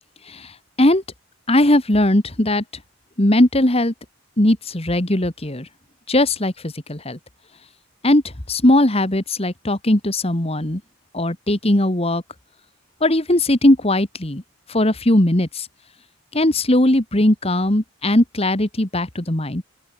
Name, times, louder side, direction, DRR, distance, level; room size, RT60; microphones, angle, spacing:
voice 1, 1.5-2.6 3.2-3.9 4.4-5.7 6.1-7.2 8.0-8.2 8.5-10.8 11.1-12.2 13.0-14.4 14.7-15.7 16.3-19.6, left 1 dB, 30° left, 1.9 m, -18 dB
open air
head